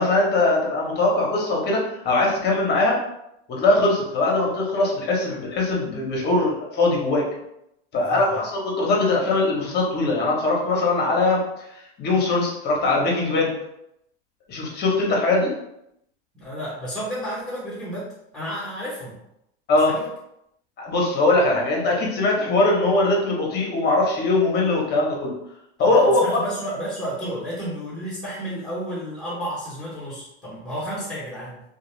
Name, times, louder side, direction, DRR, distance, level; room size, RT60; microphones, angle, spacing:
voice 1, 0.0-3.0 3.5-7.2 7.9-11.4 12.0-13.5 14.5-15.5 19.7-19.9 20.8-25.3 25.8-26.5, left 2 dB, 30° left, -2 dB, 0.9 m, -21 dB
voice 2, 7.9-8.4 16.3-19.2 19.8-20.1 25.8-31.6, equal, ahead, -11 dB, 1.0 m, -32 dB
2.3 x 2.3 x 3.1 m, 0.80 s
supercardioid pair, 120°, 32 cm